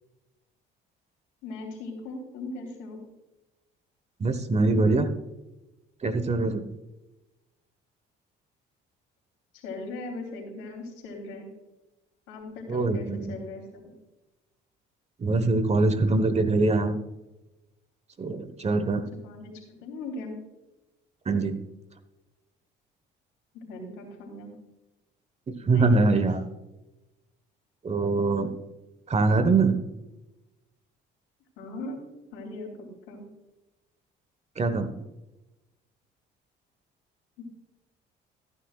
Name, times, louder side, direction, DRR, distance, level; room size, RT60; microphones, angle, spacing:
voice 1, 1.4-3.0 9.6-11.5 12.3-13.9 19.2-19.5 19.8-20.3 23.5-24.5 25.7-26.2 31.6-32.0 32.3-33.3 37.4-37.5, left 2 dB, 85° left, 2 dB, 3.3 m, -39 dB
voice 2, 4.2-5.1 6.0-6.7 12.7-13.3 15.2-16.9 18.2-19.0 21.2-21.6 25.5-26.4 27.8-28.5 29.1-29.8 34.6-34.9, right 3 dB, 35° right, 10 dB, 1.3 m, -23 dB
14.5 x 9.8 x 2.4 m, 1.0 s
supercardioid pair, 75°, 20 cm